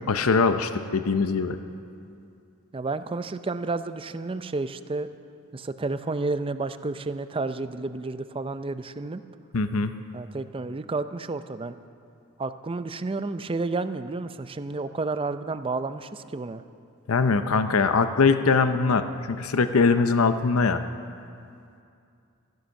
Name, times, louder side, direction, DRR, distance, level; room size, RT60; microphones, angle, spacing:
voice 1, 0.1-1.6 9.5-9.9 17.1-19.1 19.4-20.8, left 4 dB, 75° left, 10 dB, 0.7 m, -22 dB
voice 2, 2.7-5.1 5.5-9.2 10.1-11.8 12.4-16.6, right 3 dB, 25° right, 11 dB, 0.5 m, -31 dB
14.5 x 14.0 x 6.4 m, 2.5 s
head